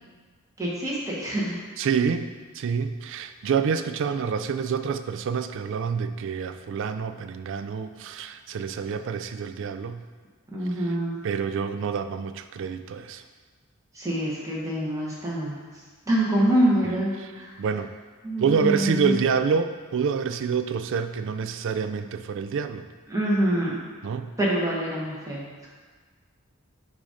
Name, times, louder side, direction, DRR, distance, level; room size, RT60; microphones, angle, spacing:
voice 1, 0.6-1.6 10.5-11.1 13.9-15.6 16.1-17.5 18.2-19.1 23.1-23.8 24.4-25.4, right 1 dB, 15° right, -6 dB, 1.3 m, -25 dB
voice 2, 1.8-2.3 2.5-10.0 10.7-11.0 11.2-13.2 17.2-17.3 17.6-17.9 18.4-22.9 24.0-24.3, right 6 dB, 60° right, 9 dB, 0.3 m, -27 dB
7.2 x 2.7 x 4.9 m, 1.5 s
head